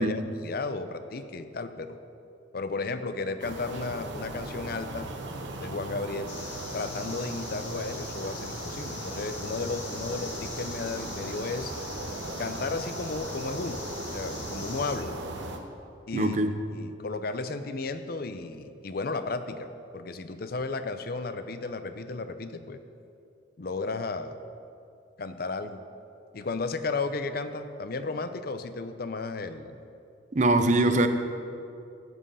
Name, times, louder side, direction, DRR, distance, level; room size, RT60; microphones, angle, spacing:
voice 1, 0.0-2.0 2.5-5.1 5.6-6.4 6.7-11.7 12.4-13.8 14.1-15.2 16.1-16.4 16.7-19.7 19.9-22.8 23.6-24.4 25.2-25.8 26.3-29.8, left 3 dB, 50° left, 10 dB, 0.6 m, -34 dB
sound 1, 3.4-15.6, right 2 dB, 70° right, 1.0 m, -38 dB
sound 2, 6.3-15.0, left 3 dB, 80° left, 2.5 m, -42 dB
voice 2, 16.1-16.5 30.3-31.1, right 2 dB, 40° right, 8 dB, 0.7 m, -23 dB
14.0 x 7.6 x 5.6 m, 2.5 s
head